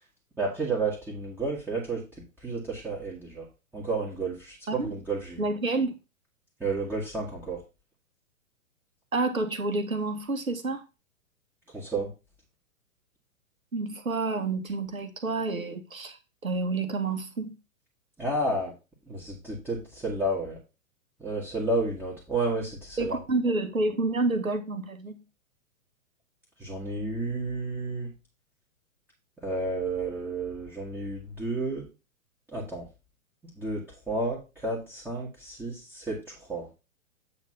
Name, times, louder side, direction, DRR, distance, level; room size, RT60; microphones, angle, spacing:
voice 1, 0.4-2.0 2.4-3.5 3.7-5.4 6.6-7.6 11.7-12.1 18.2-18.7 19.1-20.6 21.2-23.2 26.6-28.1 29.4-31.8 32.5-32.8 33.6-36.7, right 2 dB, 5° right, -6 dB, 1.7 m, -31 dB
voice 2, 5.4-5.9 9.1-10.8 13.7-17.6 23.0-25.2, right 3 dB, 75° right, 7 dB, 1.5 m, -29 dB
8.5 x 3.5 x 5.6 m, 0.28 s
figure-of-eight pair, 115°, 41 cm